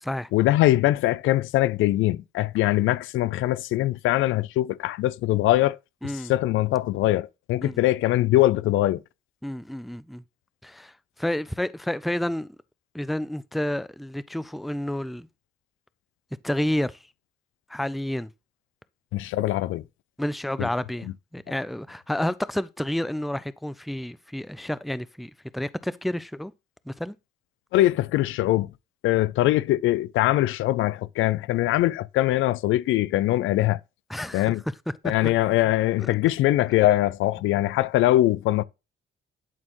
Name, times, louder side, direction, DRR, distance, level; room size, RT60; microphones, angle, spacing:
voice 1, 0.3-5.8 6.3-9.0 19.1-19.8 20.6-20.7 27.7-28.7 29.0-33.8 34.3-34.6 35.0-38.6, left 15 dB, 80° left, 0.4 m, -22 dB
voice 2, 6.0-6.3 7.6-7.8 9.4-10.2 10.6-10.9 11.2-12.5 12.9-15.3 16.4-17.0 17.7-18.3 20.2-26.5 26.9-27.1 34.1-34.5, left 1 dB, ahead, 0.3 m, -30 dB
11.0 x 4.3 x 3.0 m
cardioid pair, 90°, 20 cm